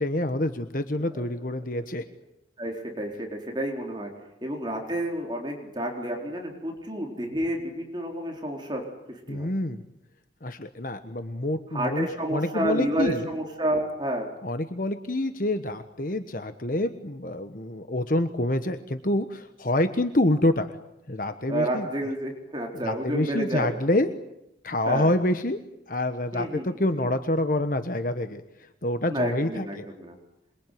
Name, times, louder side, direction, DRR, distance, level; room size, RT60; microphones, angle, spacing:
voice 1, 0.0-2.0 9.3-9.8 10.4-13.3 14.4-20.8 21.1-21.9 22.8-24.1 24.6-25.6 25.9-29.9, left 1 dB, 45° left, 8 dB, 1.3 m, -27 dB
voice 2, 2.6-4.1 4.4-8.8 9.1-9.5 11.7-14.3 21.5-23.8 24.9-25.1 26.3-26.6 26.9-27.1 29.1-30.2, right 1 dB, 25° right, 1 dB, 4.2 m, -30 dB
27.0 x 22.5 x 9.4 m, 0.85 s
head